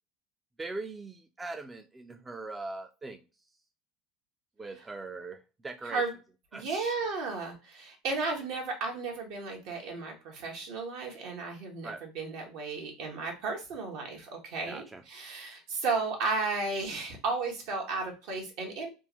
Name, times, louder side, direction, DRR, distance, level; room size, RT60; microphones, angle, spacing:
voice 1, 0.6-3.2 4.6-6.0 6.5-6.9 11.8-12.0 14.7-15.0, right 3 dB, 15° right, 6 dB, 0.5 m, -41 dB
voice 2, 5.8-6.1 6.5-18.9, right 3 dB, 70° right, 1 dB, 1.4 m, -34 dB
3.5 x 2.6 x 3.0 m, 0.31 s
supercardioid pair, 100°, 0 cm